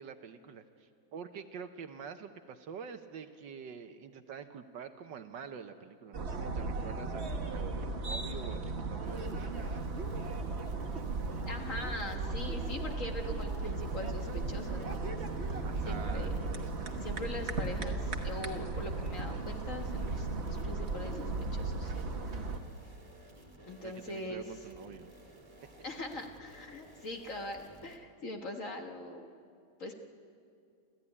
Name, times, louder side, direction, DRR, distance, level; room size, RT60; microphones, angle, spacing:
voice 1, 0.0-9.7 15.6-16.3 23.8-25.1, right 7 dB, 65° right, 8 dB, 1.5 m, -46 dB
sound 1, 6.1-22.6, right 3 dB, 35° right, 1.4 m, -36 dB
sound 2, 9.0-28.0, right 2 dB, 15° right, 2.4 m, -56 dB
voice 2, 11.5-15.1 15.4-16.3 17.0-21.9 22.3-22.5 23.6-24.4 25.8-29.3 29.8-29.9, left 2 dB, 45° left, 3 dB, 1.5 m, -42 dB
29.0 x 13.5 x 9.8 m, 2.4 s
omnidirectional pair, 2.3 m